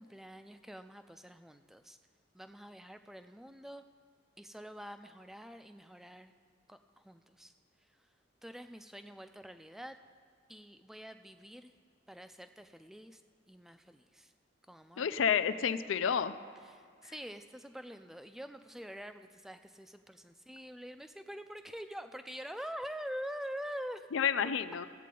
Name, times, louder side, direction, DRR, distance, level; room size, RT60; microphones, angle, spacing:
voice 1, 0.0-2.0 2.3-3.8 4.4-6.3 6.7-7.5 8.4-10.0 10.5-11.7 12.1-13.2 13.5-14.3 14.7-15.1 16.6-24.1, equal, ahead, 9 dB, 0.3 m, -46 dB
voice 2, 15.0-16.4 24.1-24.9, left 7 dB, 85° left, 13 dB, 0.4 m, -30 dB
16.0 x 8.3 x 3.8 m, 2.2 s
head